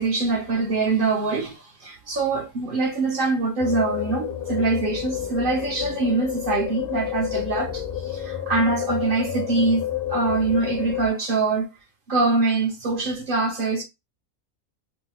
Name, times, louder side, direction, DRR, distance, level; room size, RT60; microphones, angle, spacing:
voice 1, 0.0-9.8 10.1-11.7 12.1-13.8, right 3 dB, 45° right, 0.9 m, -24 dB
sound 1, 3.6-11.1, left 11 dB, 50° left, 0.8 m, -30 dB
3.4 x 2.1 x 3.2 m
omnidirectional pair, 1.5 m